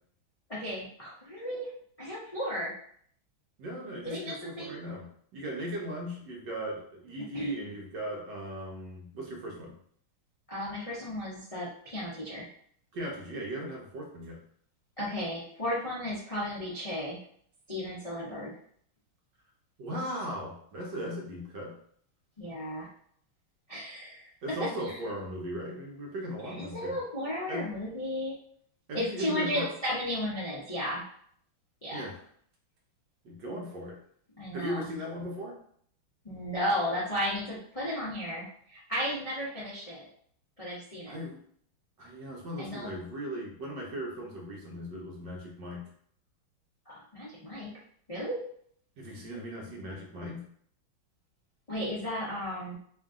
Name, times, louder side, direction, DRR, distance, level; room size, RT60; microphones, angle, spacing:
voice 1, 0.5-1.7 2.0-2.7 4.0-4.8 7.3-7.6 10.5-12.5 15.0-17.2 17.7-18.5 22.4-22.9 23.7-24.3 24.8-25.0 26.4-28.3 28.9-31.0 31.8-32.0 34.4-34.8 36.2-40.1 40.6-41.2 42.6-42.9 46.9-47.7 48.1-48.4 51.7-52.7, equal, 70° left, -8 dB, 0.3 m, -34 dB
voice 2, 3.6-9.8 12.9-14.4 19.8-21.8 24.4-27.0 27.5-27.7 28.9-29.7 31.9-32.2 33.2-34.0 34.5-35.6 41.1-41.4 42.0-45.8 49.0-50.4, equal, 65° right, -2 dB, 1.4 m, -38 dB
3.6 x 2.6 x 3.6 m, 0.62 s
omnidirectional pair, 2.3 m